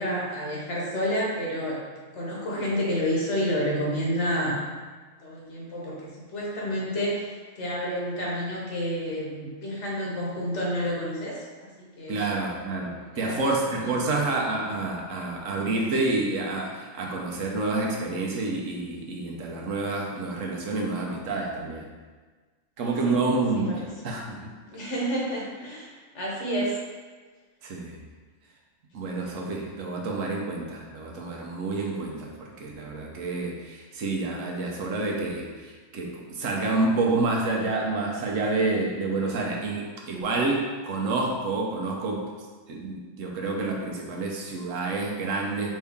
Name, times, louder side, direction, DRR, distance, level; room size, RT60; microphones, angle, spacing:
voice 1, 0.0-1.8 2.1-4.6 5.2-12.4 12.9-14.2 22.8-23.2 23.5-23.9 24.7-26.8, equal, 65° left, -4 dB, 1.3 m, -30 dB
voice 2, 12.1-21.9 22.8-24.5 27.6-28.0 28.9-42.2 42.7-45.7, right 3 dB, 85° right, -1 dB, 1.2 m, -28 dB
5.6 x 2.7 x 3.5 m, 1.4 s
omnidirectional pair, 1.3 m